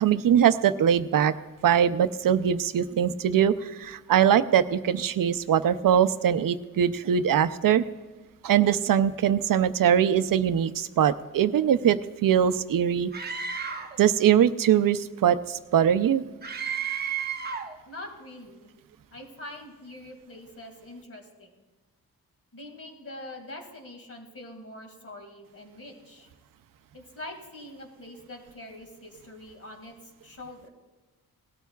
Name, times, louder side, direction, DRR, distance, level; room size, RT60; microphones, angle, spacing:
voice 1, 0.0-1.3 1.6-7.8 8.4-13.1 14.0-16.2, right 9 dB, 65° right, 12 dB, 0.6 m, -22 dB
Screaming, 13.1-14.0 16.4-17.8, right 7 dB, 25° right, 0.9 m, -32 dB
voice 2, 17.9-18.7 19.1-21.6 22.5-26.3 26.9-30.7, left 1 dB, 40° left, 3 dB, 2.2 m, -44 dB
18.5 x 13.0 x 2.4 m, 1.2 s
wide cardioid pair, 125°, 36 cm